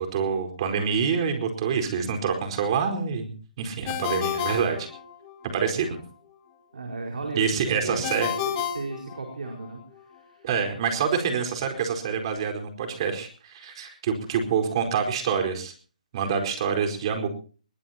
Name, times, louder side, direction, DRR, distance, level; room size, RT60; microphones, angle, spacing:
voice 1, 0.0-3.3 3.6-4.9 5.4-6.0 7.3-8.3 10.4-15.7 16.1-17.3, right 6 dB, 40° right, 5 dB, 4.5 m, -26 dB
Ringtone, 3.9-5.5 8.0-9.7, left 9 dB, 25° left, 1.8 m, -31 dB
voice 2, 6.7-10.4, right 3 dB, 80° right, 2 dB, 4.9 m, -36 dB
22.0 x 20.5 x 2.9 m, 0.39 s
hypercardioid pair, 155°, 4 cm